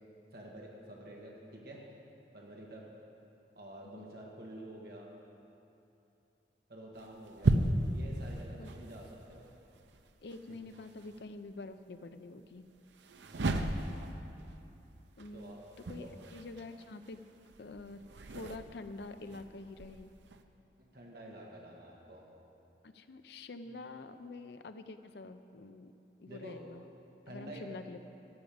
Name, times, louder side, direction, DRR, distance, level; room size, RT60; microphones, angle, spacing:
voice 1, 0.3-1.8 2.3-2.8 3.5-5.1 6.7-7.6 7.9-9.4 10.5-10.6 13.2-13.6 15.3-15.7 16.0-16.1 20.8-22.3 23.6-23.8 26.3-26.6 27.3-27.7, right 1 dB, 55° right, -2 dB, 1.5 m, -49 dB
sound 1, 7.0-11.2 12.9-20.4, right 2 dB, 90° right, 0.6 m, -36 dB
voice 2, 10.2-12.7 15.2-15.6 15.9-16.1 16.3-17.2 17.6-18.0 18.3-20.1 22.8-26.9 27.3-28.0, left 3 dB, 70° left, 9 dB, 0.5 m, -47 dB
13.5 x 5.2 x 8.5 m, 2.8 s
head